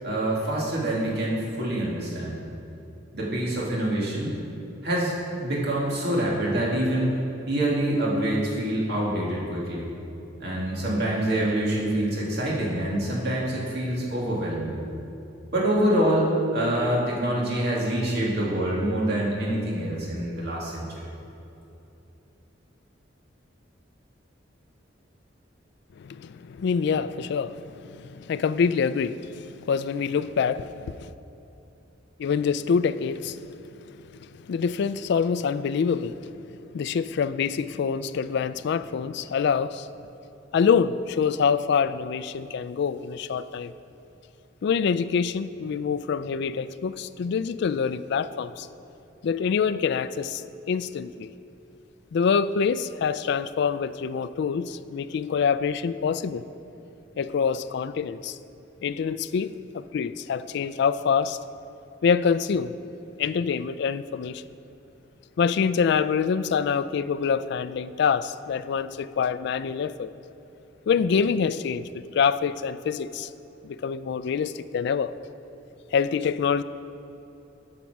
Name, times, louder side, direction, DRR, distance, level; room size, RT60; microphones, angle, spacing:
voice 1, 0.0-2.4 3.1-4.4 4.8-7.2 7.5-9.9 10.4-14.8 15.5-20.9, right 1 dB, 60° right, 2.2 m, -26 dB
voice 2, 26.0-31.1 32.2-33.4 33.9-34.0 34.2-36.3 36.7-39.9 40.5-43.7 44.6-48.7 49.2-51.3 52.1-56.4 57.2-58.4 58.8-61.4 62.0-62.7 63.2-64.4 65.4-70.1 70.9-73.3 73.6-75.1 75.9-76.6, left 6 dB, 65° left, 0.3 m, -26 dB
9.4 x 5.8 x 6.1 m
head